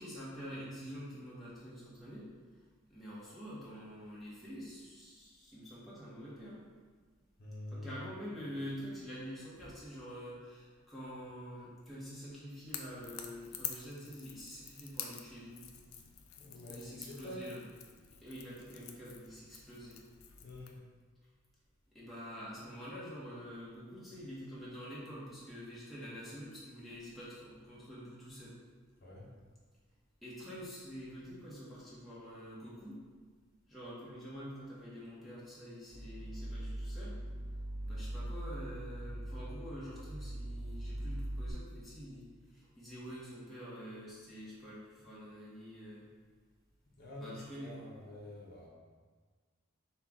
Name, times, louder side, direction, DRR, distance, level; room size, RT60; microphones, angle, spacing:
voice 1, 0.0-2.3 2.9-6.7 7.7-15.6 16.7-17.6 18.2-20.0 21.9-28.5 30.2-33.0 33.7-37.2 37.8-46.1 47.2-47.9, equal, ahead, -10 dB, 1.0 m, -47 dB
voice 2, 7.4-8.1 16.4-17.4 20.4-20.8 29.0-29.3 47.0-48.7, left 1 dB, 50° left, -5 dB, 0.7 m, -47 dB
Crackle / Crack, 12.7-20.8, left 9 dB, 90° left, 0.4 m, -48 dB
sound 1, 35.9-41.5, right 1 dB, 80° right, 0.8 m, -41 dB
5.6 x 2.3 x 3.5 m, 1.5 s
head